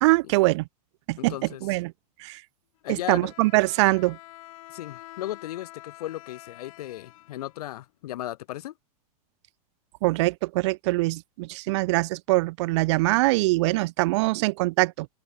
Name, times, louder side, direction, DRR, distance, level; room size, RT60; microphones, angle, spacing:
voice 1, 0.0-0.7 1.1-1.3 1.6-1.9 2.2-2.4 2.9-4.2 10.0-15.1, right 22 dB, 50° right, 0.4 m, -23 dB
voice 2, 1.2-1.6 2.8-3.3 4.7-8.7, left 14 dB, 75° left, 1.0 m, -36 dB
Bowed string instrument, 3.0-8.0, left 17 dB, 60° left, 3.3 m, -47 dB
open air
supercardioid pair, 155°, 20 cm